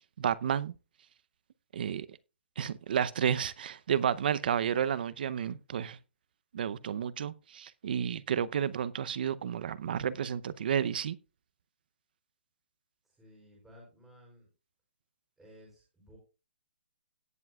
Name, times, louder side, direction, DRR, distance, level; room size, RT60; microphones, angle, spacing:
voice 1, 0.2-0.7 1.7-2.1 2.6-6.0 6.5-11.2, right 8 dB, 55° right, 0.6 m, -31 dB
voice 2, 13.0-14.5 15.4-16.2, equal, 5° right, 4.9 m, -56 dB
17.5 x 7.3 x 2.3 m
hypercardioid pair, 165°, 6 cm